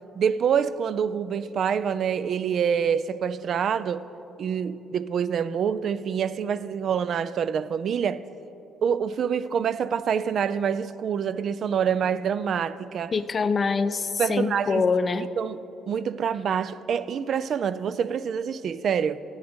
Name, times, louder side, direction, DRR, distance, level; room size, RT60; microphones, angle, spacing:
voice 1, 0.2-4.1 4.4-8.2 8.8-13.1 14.2-14.8 15.4-15.6 15.9-19.2, right 7 dB, 60° right, 0.3 m, -26 dB
voice 2, 13.1-15.3, left 4 dB, 45° left, 0.5 m, -24 dB
11.0 x 8.9 x 5.2 m
hypercardioid pair, 50°, 0 cm